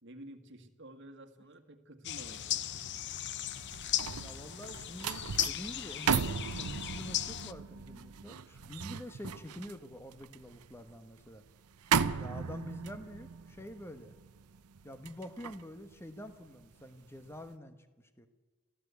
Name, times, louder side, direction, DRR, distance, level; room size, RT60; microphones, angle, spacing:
voice 1, 0.0-2.9, right 1 dB, 55° right, 7 dB, 1.8 m, -51 dB
sound 1, 2.0-7.5, left 12 dB, 50° left, 0.6 m, -37 dB
sound 2, 3.5-16.8 17.2-17.5, right 6 dB, 90° right, 0.7 m, -37 dB
voice 2, 4.2-11.4 12.2-14.1 14.8-18.3, left 1 dB, 10° left, 9 dB, 1.2 m, -47 dB
29.5 x 14.0 x 8.3 m, 1.3 s
head